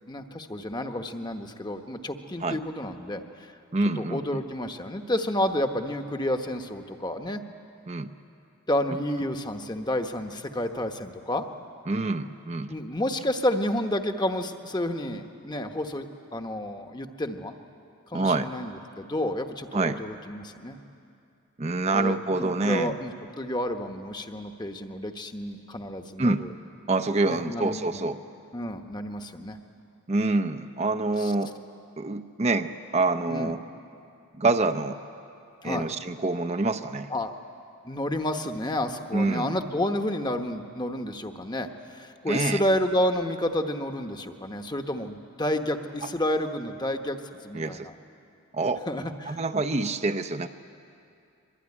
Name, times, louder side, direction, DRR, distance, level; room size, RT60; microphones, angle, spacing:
voice 1, 0.1-3.5 4.0-7.4 8.7-11.4 12.7-17.5 18.1-20.8 21.9-26.5 27.3-28.1 28.5-29.6 31.2-31.3 33.3-33.5 35.6-35.9 37.1-37.3 37.8-47.9 48.9-49.4, left 1 dB, 20° left, 6 dB, 1.0 m, -30 dB
voice 2, 3.7-4.2 7.9-8.1 11.9-12.7 18.1-18.5 19.7-20.0 21.6-23.0 26.2-26.4 26.9-28.2 30.1-31.5 32.0-33.6 34.4-35.0 35.6-37.1 39.1-39.5 42.3-42.6 47.5-47.9 48.5-48.9 49.3-50.5, right 3 dB, 30° right, 7 dB, 0.6 m, -26 dB
24.5 x 23.0 x 9.8 m, 2.6 s
head